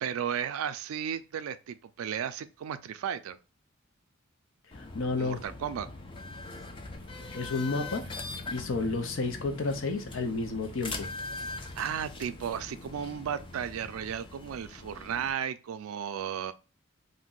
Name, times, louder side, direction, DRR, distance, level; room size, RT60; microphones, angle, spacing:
voice 1, 0.0-3.4 5.2-5.9 11.8-16.5, right 8 dB, 90° right, 0.3 m, -34 dB
voice 2, 4.7-5.4 7.3-8.0 8.5-11.1, left 3 dB, 70° left, 0.6 m, -31 dB
sound 1, 4.7-15.3, left 3 dB, 25° left, 0.3 m, -42 dB
2.6 x 2.1 x 3.7 m
head